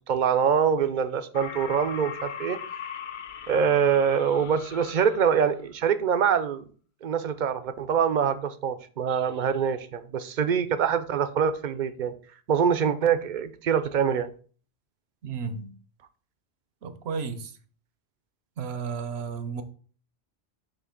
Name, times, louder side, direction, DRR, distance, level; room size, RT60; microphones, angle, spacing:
voice 1, 0.1-2.6 3.5-6.7 7.0-12.1 12.5-14.3, right 7 dB, 55° right, 0.6 m, -24 dB
sound 1, 1.3-5.5, left 7 dB, 55° left, 0.6 m, -39 dB
voice 2, 15.2-15.7 16.8-17.5 18.6-19.6, right 5 dB, 75° right, 1.0 m, -33 dB
6.5 x 2.8 x 5.7 m
omnidirectional pair, 1.1 m